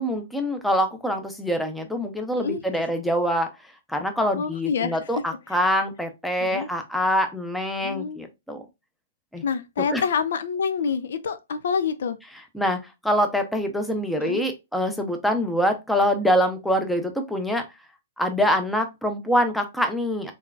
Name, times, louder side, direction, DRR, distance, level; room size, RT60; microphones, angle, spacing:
voice 1, 0.0-3.5 3.9-8.6 9.3-9.4 9.9-10.0 12.5-17.6 18.2-20.3, equal, ahead, 0.7 m, -25 dB
voice 2, 4.3-5.0 5.5-5.6 6.4-6.7 7.8-8.3 9.4-12.2 14.2-14.4, left 6 dB, 70° left, 0.4 m, -27 dB
3.6 x 3.3 x 2.4 m
hypercardioid pair, 130°, 0 cm